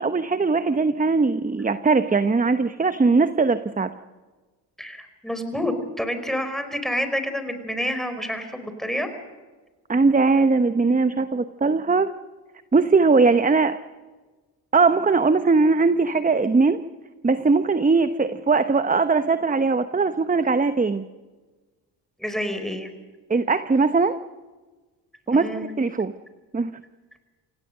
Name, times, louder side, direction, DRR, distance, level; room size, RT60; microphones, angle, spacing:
voice 1, 0.0-3.9 9.9-12.1 12.7-13.8 14.7-16.8 17.2-21.0 23.3-24.2 25.3-25.5 25.8-26.1 26.5-26.7, right 4 dB, 20° right, 11 dB, 1.0 m, -20 dB
voice 2, 4.8-9.1 22.2-22.9 25.3-25.7, equal, ahead, 8 dB, 4.6 m, -28 dB
27.5 x 17.5 x 6.7 m, 1.3 s
supercardioid pair, 65°, 45 cm